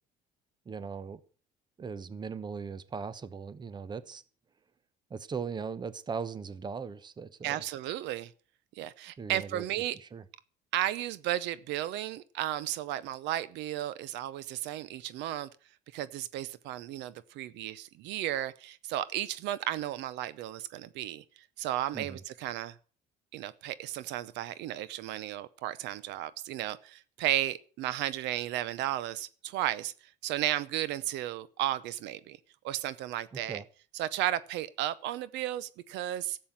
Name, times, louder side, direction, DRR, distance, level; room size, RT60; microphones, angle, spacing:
voice 1, 0.7-1.2 1.8-4.2 5.1-7.6 9.2-9.6 10.1-10.2 21.9-22.2 33.5-33.6, right 5 dB, 25° right, 0.9 m, -38 dB
voice 2, 7.4-8.3 8.8-10.0 10.7-15.5 15.9-22.8 23.3-29.9 30.2-32.4 32.6-33.6 33.9-36.4, right 13 dB, 75° right, 0.8 m, -34 dB
13.0 x 7.8 x 8.8 m
cardioid pair, 135°, 18 cm